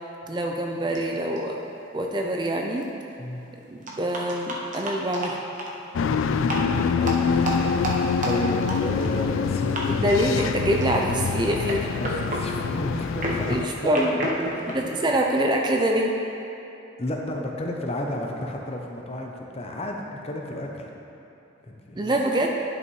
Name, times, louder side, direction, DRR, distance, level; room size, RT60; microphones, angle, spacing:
voice 1, 0.3-1.6 1.9-2.9 3.5-5.4 10.0-11.9 13.5-14.2 14.7-16.1 22.0-22.5, right 1 dB, 20° right, 1 dB, 0.4 m, -25 dB
sound 1, 0.9-1.0 1.4-1.5 2.4-2.5 2.8-2.9 3.9-5.7 6.4-6.7 7.0-9.4 9.7-9.8 10.1-10.5 10.8-11.2 11.6-15.4, right 1 dB, 40° right, 0.9 m, -31 dB
sound 2, 5.9-13.6, left 5 dB, 75° left, 0.3 m, -25 dB
voice 2, 8.2-10.0 12.0-13.9 14.2-14.8 17.0-20.9 21.7-22.1, left 1 dB, 30° left, 1 dB, 0.6 m, -32 dB
10.5 x 6.1 x 3.1 m, 2.9 s
head